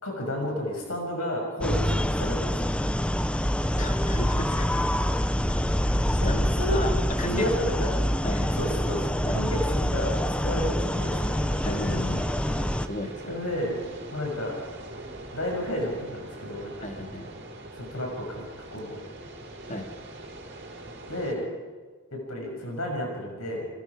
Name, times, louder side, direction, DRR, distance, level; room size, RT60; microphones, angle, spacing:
voice 1, 0.0-2.5 6.2-6.3 6.6-6.8 7.3-7.9 8.6-9.0 9.3-11.1 13.3-13.8 14.1-14.6 15.3-16.7 17.8-18.5 18.7-19.0 21.1-21.5 22.1-23.7, left 1 dB, 80° left, 0 dB, 6.7 m, -31 dB
sound 1, 1.6-12.9, equal, 5° left, 0.7 m, -26 dB
voice 2, 3.8-4.8 5.5-5.6 5.8-6.9 7.2-7.5 7.9-8.6 9.3-9.5 10.9-11.1 11.6-12.3 12.9-13.4 16.8-17.3 19.6-19.9, left 1 dB, 35° left, 4 dB, 2.5 m, -34 dB
sound 2, 10.9-21.3, right 1 dB, 55° right, 5.0 m, -42 dB
29.5 x 23.0 x 5.0 m, 1.4 s
head